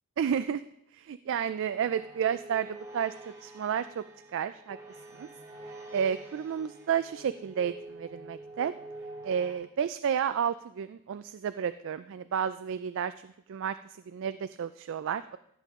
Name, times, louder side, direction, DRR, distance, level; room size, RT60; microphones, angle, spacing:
voice 1, 0.2-0.6 0.9-3.1 3.4-4.0 4.3-4.8 5.1-5.3 5.9-8.7 9.2-13.1 13.5-15.4, right 8 dB, 60° right, 12 dB, 0.3 m, -31 dB
sound 1, 1.4-9.5, right 2 dB, 15° right, 1.9 m, -47 dB
15.5 x 7.5 x 3.6 m, 0.76 s
head